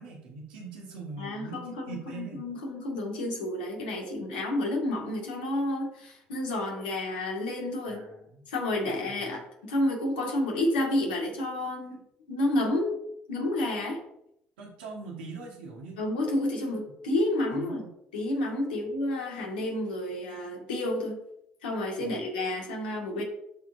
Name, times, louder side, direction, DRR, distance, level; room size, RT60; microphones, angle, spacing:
voice 1, 0.0-2.5 7.9-8.5 8.8-9.2 14.6-16.0 16.3-16.5 17.5-17.9 22.0-22.2, right 4 dB, 85° right, -2 dB, 1.8 m, -42 dB
voice 2, 1.2-8.0 8.5-12.0 12.3-13.0 13.3-14.0 16.0-17.8 18.1-21.2 21.6-23.2, left 1 dB, 90° left, -1 dB, 2.1 m, -30 dB
12.5 x 4.5 x 2.7 m, 0.77 s
hypercardioid pair, 55°, 5 cm